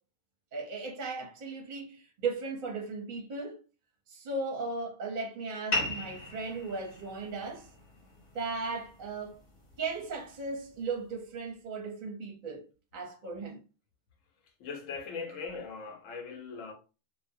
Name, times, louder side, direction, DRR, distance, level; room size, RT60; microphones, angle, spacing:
voice 1, 0.5-3.6 4.1-7.7 8.3-9.4 9.8-13.6 15.3-15.4, right 3 dB, 50° right, 0.6 m, -37 dB
sound 1, 5.7-10.8, left 2 dB, 40° left, 0.9 m, -39 dB
voice 2, 14.6-16.7, left 5 dB, 80° left, 1.0 m, -40 dB
2.5 x 2.0 x 2.5 m
omnidirectional pair, 1.3 m